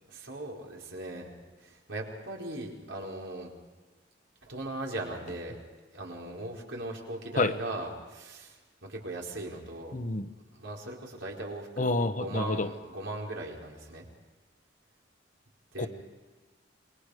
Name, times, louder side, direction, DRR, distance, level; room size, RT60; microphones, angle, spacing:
voice 1, 0.1-1.3 1.6-3.5 4.4-5.6 5.9-9.9 10.5-14.0 15.7-15.9, right 1 dB, 80° right, -1 dB, 4.6 m, -39 dB
voice 2, 9.9-10.3 11.8-12.7 15.8-15.9, left 3 dB, 40° left, 10 dB, 1.0 m, -28 dB
27.0 x 21.5 x 5.0 m, 1.3 s
head